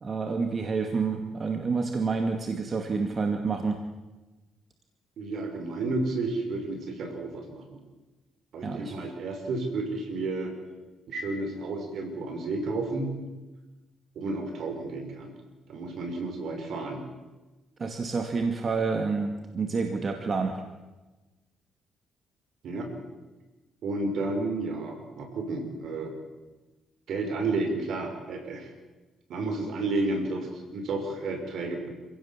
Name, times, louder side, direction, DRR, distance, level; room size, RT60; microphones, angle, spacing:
voice 1, 0.0-3.8 8.6-8.9 17.8-20.6, right 4 dB, 40° right, 5 dB, 2.2 m, -28 dB
voice 2, 5.2-7.8 8.5-10.5 11.1-13.1 14.2-15.3 15.7-17.0 22.6-22.9 23.8-26.1 27.1-28.7 29.3-31.9, right 2 dB, 70° right, 5 dB, 6.0 m, -31 dB
27.5 x 16.5 x 7.4 m, 1.2 s
cardioid pair, 90°, 0 cm